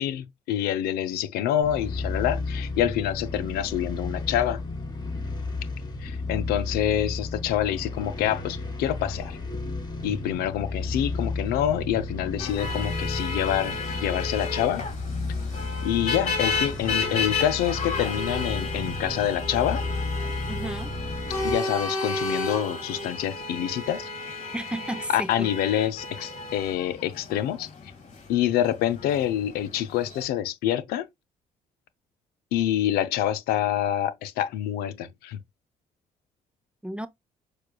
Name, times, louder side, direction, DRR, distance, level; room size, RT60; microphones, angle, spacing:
voice 1, 0.0-4.6 6.0-9.4 10.0-14.8 15.8-19.8 21.4-24.1 25.1-27.7 28.3-31.1 32.5-35.4, left 11 dB, 80° left, 0.5 m, -26 dB
sound 1, 1.6-21.5, left 3 dB, 25° left, 2.8 m, -33 dB
sound 2, 12.4-30.2, left 3 dB, 50° left, 1.7 m, -32 dB
voice 2, 20.5-21.0 24.5-25.5 36.8-37.1, right 1 dB, 5° right, 0.5 m, -33 dB
6.5 x 2.3 x 2.2 m
supercardioid pair, 70°, 16 cm